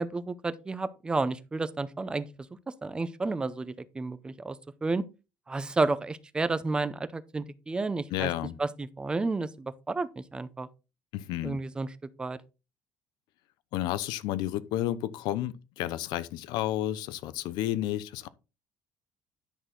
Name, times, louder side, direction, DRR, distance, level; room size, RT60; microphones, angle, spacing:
voice 1, 0.0-2.3 2.8-5.0 5.5-8.3 8.6-10.7 11.4-11.9 12.2-12.4, right 3 dB, 15° right, 0.6 m, -31 dB
voice 2, 8.1-8.5 11.1-11.6 13.7-18.3, left 13 dB, 90° left, 0.8 m, -31 dB
10.5 x 6.3 x 3.8 m
cardioid pair, 170°, 7 cm